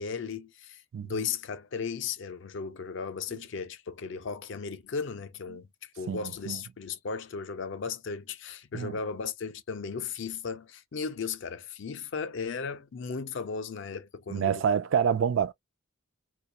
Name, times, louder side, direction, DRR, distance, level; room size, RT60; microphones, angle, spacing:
voice 1, 0.0-14.6, left 5 dB, 55° left, 0.4 m, -36 dB
voice 2, 0.9-1.3 3.3-3.4 6.1-6.6 8.7-9.0 14.3-15.5, right 7 dB, 60° right, 0.3 m, -28 dB
2.3 x 2.2 x 2.6 m
head